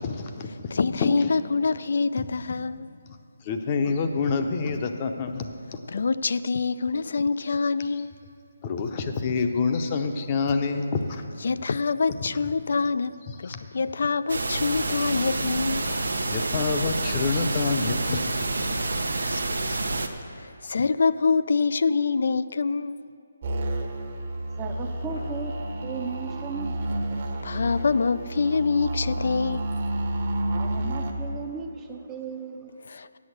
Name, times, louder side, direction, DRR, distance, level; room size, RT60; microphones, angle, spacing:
voice 1, 0.0-0.7 1.0-1.3 2.2-2.6 3.4-5.5 8.6-11.2 13.3-13.7 15.9-16.0 16.3-18.7, left 4 dB, 30° left, 6 dB, 0.7 m, -27 dB
voice 2, 0.7-2.9 5.9-8.1 11.4-15.8 19.2-19.8 20.4-23.0 27.4-29.6 32.8-33.2, left 4 dB, 60° left, 15 dB, 0.3 m, -25 dB
sound 1, 14.3-20.1, right 2 dB, 85° right, 0.8 m, -28 dB
sound 2, 23.4-31.1, right 1 dB, 50° right, 1.1 m, -30 dB
voice 3, 24.6-25.5 25.8-27.4 30.4-32.7, right 5 dB, 15° right, 3 dB, 0.6 m, -36 dB
8.4 x 6.9 x 8.0 m, 2.7 s
figure-of-eight pair, 155°, 0 cm